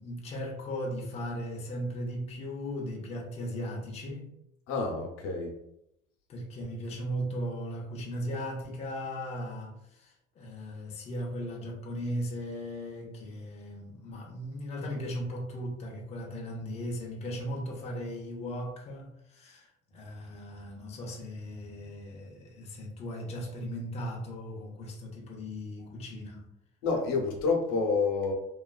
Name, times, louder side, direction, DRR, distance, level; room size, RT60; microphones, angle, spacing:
voice 1, 0.0-4.3 6.3-26.5, equal, 30° left, -1 dB, 0.5 m, -37 dB
voice 2, 4.7-5.6 26.8-28.3, left 4 dB, 85° left, 0 dB, 0.8 m, -28 dB
3.0 x 2.2 x 2.3 m, 0.80 s
cardioid pair, 150°, 21 cm